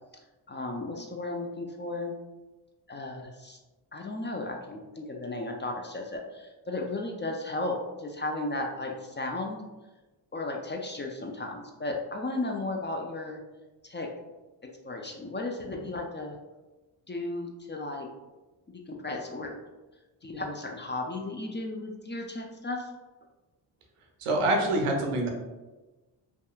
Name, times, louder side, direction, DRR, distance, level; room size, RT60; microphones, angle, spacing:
voice 1, 0.5-2.2 2.9-3.6 3.9-9.6 10.3-13.4 13.8-14.1 14.8-16.3 17.1-18.1 18.7-19.6 20.2-22.9, left 2 dB, 25° left, 1 dB, 0.4 m, -35 dB
voice 2, 24.2-25.3, right 1 dB, 90° right, 2 dB, 0.6 m, -25 dB
2.7 x 2.3 x 2.3 m, 1.1 s
cardioid pair, 40°, 49 cm